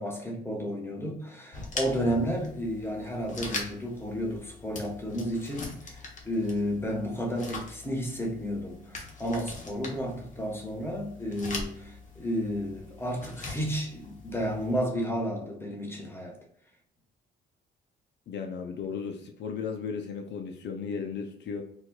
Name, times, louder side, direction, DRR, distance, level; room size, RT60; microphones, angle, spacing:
voice 1, 0.0-16.4, equal, 10° left, 1.2 m, -32 dB
sound 1, 1.5-14.9, left 3 dB, 40° left, 1.0 m, -42 dB
voice 2, 18.3-21.6, left 6 dB, 65° left, 0.5 m, -35 dB
4.3 x 2.3 x 2.3 m
cardioid pair, 90°, 20 cm